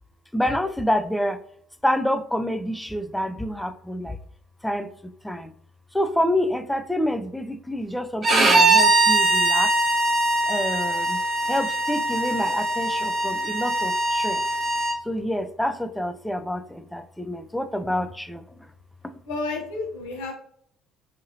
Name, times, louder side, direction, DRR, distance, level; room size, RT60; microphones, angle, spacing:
voice 1, 0.3-1.4 1.8-4.2 4.6-5.5 5.9-9.7 10.5-11.2 11.5-14.4 15.0-18.4, equal, 5° left, 9 dB, 0.3 m, -27 dB
Bowed string instrument, 8.2-15.0, right 2 dB, 35° right, 0.7 m, -21 dB
voice 2, 19.3-20.3, left 3 dB, 75° left, 0 dB, 0.8 m, -30 dB
2.7 x 2.6 x 2.6 m, 0.66 s
hypercardioid pair, 55°, 0 cm